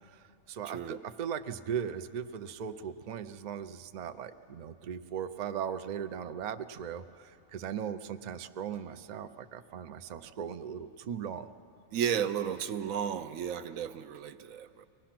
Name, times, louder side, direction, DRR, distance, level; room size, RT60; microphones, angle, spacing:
voice 1, 0.0-11.5, right 8 dB, 60° right, 10 dB, 0.4 m, -38 dB
voice 2, 0.7-1.0 11.9-14.9, right 8 dB, 75° right, 11 dB, 1.0 m, -33 dB
24.0 x 18.5 x 5.9 m, 2.6 s
omnidirectional pair, 1.4 m